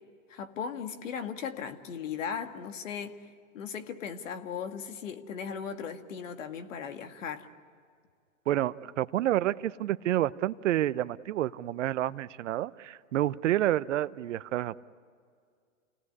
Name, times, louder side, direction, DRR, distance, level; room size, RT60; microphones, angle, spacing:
voice 1, 0.3-3.1 3.5-7.5, left 7 dB, 70° left, 8 dB, 2.0 m, -37 dB
voice 2, 8.5-14.8, right 13 dB, 65° right, 16 dB, 0.8 m, -29 dB
28.5 x 18.0 x 9.8 m, 2.2 s
hypercardioid pair, 130°, 39 cm